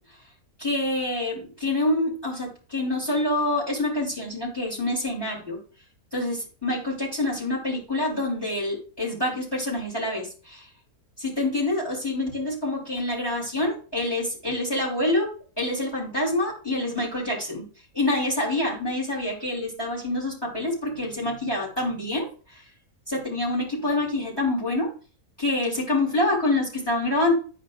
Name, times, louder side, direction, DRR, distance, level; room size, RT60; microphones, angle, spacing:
voice 1, 0.6-5.6 6.1-10.7 11.2-15.3 15.6-17.7 17.9-22.6 23.1-24.9 25.4-27.3, left 2 dB, 15° left, -3 dB, 3.3 m, -26 dB
10.5 x 5.0 x 2.5 m, 0.37 s
omnidirectional pair, 1.6 m